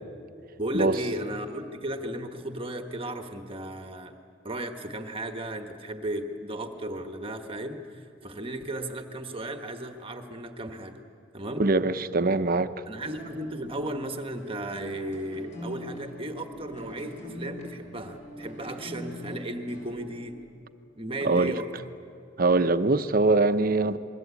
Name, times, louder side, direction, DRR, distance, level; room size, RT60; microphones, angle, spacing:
voice 1, 0.6-4.1 4.4-11.0 11.3-11.7 12.9-20.4 21.0-21.7, right 1 dB, 30° right, 1.3 m, -35 dB
voice 2, 11.6-12.7 21.2-21.6 22.4-24.0, right 3 dB, 50° right, 0.9 m, -23 dB
sound 1, 12.9-20.6, equal, 35° left, 7.9 m, -43 dB
28.0 x 22.0 x 8.4 m
head